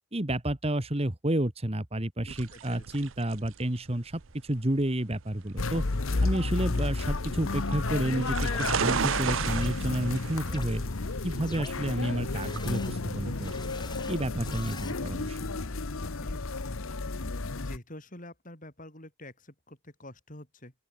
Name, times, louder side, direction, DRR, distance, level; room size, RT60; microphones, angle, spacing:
voice 1, 0.1-5.8 6.2-10.8 11.2-13.5 14.1-15.4, right 1 dB, 25° right, 1.6 m, -30 dB
voice 2, 2.2-3.1 16.2-16.5 17.5-20.7, left 1 dB, 35° left, 5.9 m, -47 dB
sound 1, 2.3-14.6, right 7 dB, 60° right, 0.6 m, -36 dB
sound 2, 5.6-17.8, left 3 dB, 70° left, 1.1 m, -32 dB
sound 3, 8.4-8.7 9.4-9.7 10.5-10.7 11.4-11.7 12.4-12.9 13.4-14.9, left 3 dB, 20° left, 4.8 m, -44 dB
open air
head